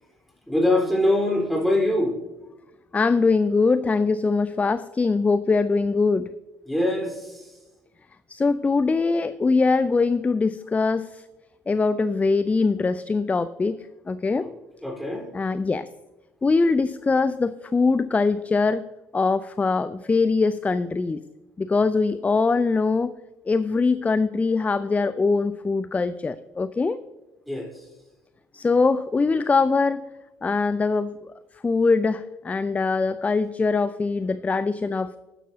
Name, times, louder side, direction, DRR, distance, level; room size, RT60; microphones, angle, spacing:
voice 1, 0.5-2.2 6.7-7.6 14.4-14.5 14.8-15.3 27.5-27.9, left 1 dB, ahead, 1 dB, 4.0 m, -23 dB
voice 2, 2.9-6.3 8.3-11.2 11.7-13.8 14.1-14.5 15.3-15.9 16.4-18.8 19.1-21.2 21.6-23.1 23.5-27.0 28.5-30.0 30.4-31.2 31.6-35.2, left 4 dB, 20° left, 15 dB, 0.4 m, -22 dB
12.5 x 10.0 x 2.7 m, 1.1 s
hypercardioid pair, 55°, 7 cm